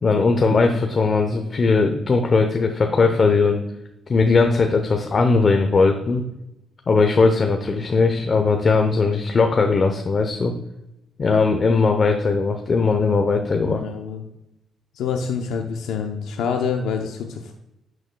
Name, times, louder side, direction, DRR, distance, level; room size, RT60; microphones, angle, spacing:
voice 1, 0.0-3.6 4.1-6.2 6.9-10.5 11.2-13.8, left 4 dB, 40° left, 4 dB, 0.7 m, -19 dB
voice 2, 13.6-14.2 14.9-17.5, left 6 dB, 85° left, 3 dB, 0.7 m, -27 dB
11.0 x 6.4 x 2.2 m, 0.88 s
cardioid pair, 90°, 0 cm